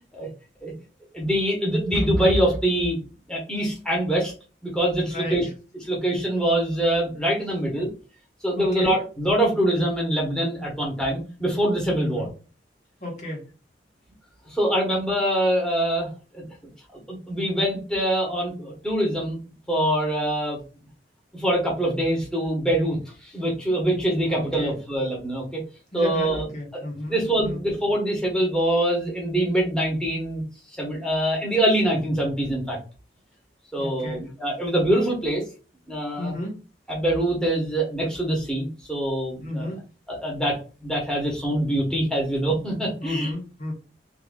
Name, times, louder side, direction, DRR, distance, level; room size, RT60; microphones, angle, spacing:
voice 1, 1.1-3.0 3.3-4.3 4.6-5.5 5.9-7.9 8.4-12.3 14.5-16.1 16.3-16.4 17.1-19.4 19.7-20.6 21.3-25.6 25.9-26.5 26.7-26.8 27.1-30.4 30.8-32.8 33.7-35.4 35.9-36.3 36.9-39.7 40.1-40.6 40.8-43.3, right 1 dB, 5° left, -3 dB, 1.6 m, -24 dB
voice 2, 5.1-5.4 8.5-8.9 12.0-12.3 13.0-13.5 24.3-24.8 25.9-27.2 27.4-27.6 33.8-34.2 36.2-36.6 39.4-39.8 43.0-43.7, left 1 dB, 45° left, -1 dB, 1.5 m, -32 dB
4.6 x 3.5 x 2.4 m, 0.33 s
head